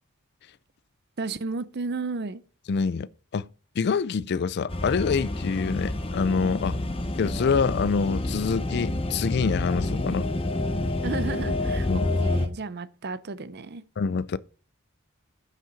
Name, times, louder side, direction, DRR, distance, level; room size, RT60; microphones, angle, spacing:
voice 1, 1.2-2.4 11.0-13.8, right 4 dB, 50° right, 0.6 m, -33 dB
voice 2, 2.7-3.1 3.3-3.5 3.8-6.8 7.2-10.3 11.9-12.1 14.0-14.4, left 5 dB, 50° left, 0.4 m, -26 dB
sound 1, 4.7-12.5, left 2 dB, 25° left, 1.0 m, -28 dB
9.3 x 5.6 x 5.7 m
head